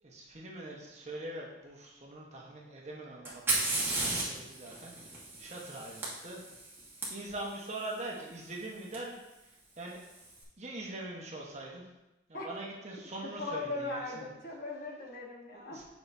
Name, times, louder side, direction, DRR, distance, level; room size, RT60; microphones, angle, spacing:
voice 1, 0.0-6.4 7.1-10.0 10.6-11.9 12.3-14.3 15.5-15.9, right 2 dB, 40° right, -2 dB, 1.2 m, -43 dB
Fire, 3.3-7.1 8.9-9.0 9.9-10.3, right 2 dB, 15° right, 1.5 m, -34 dB
voice 2, 13.4-15.9, left 2 dB, 55° left, -2 dB, 1.3 m, -39 dB
7.9 x 5.8 x 2.7 m, 0.98 s
head